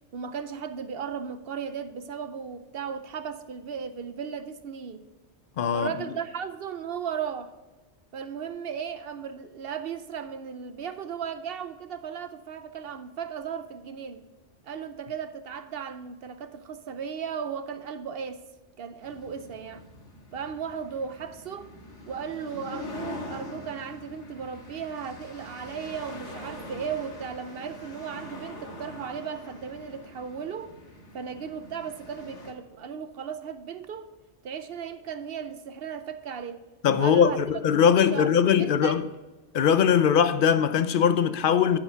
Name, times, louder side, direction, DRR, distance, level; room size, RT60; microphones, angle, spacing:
voice 1, 0.1-5.0 5.7-7.6 8.1-14.2 14.6-18.4 18.8-19.8 20.3-21.7 22.1-30.7 31.1-34.1 34.4-36.6 37.0-39.0, right 7 dB, 60° right, 0.8 m, -36 dB
voice 2, 5.6-5.9 36.8-39.0 39.5-41.8, left 8 dB, 60° left, 0.6 m, -21 dB
sound 1, 19.0-32.5, left 2 dB, 75° left, 2.0 m, -43 dB
11.5 x 5.0 x 5.7 m
omnidirectional pair, 1.2 m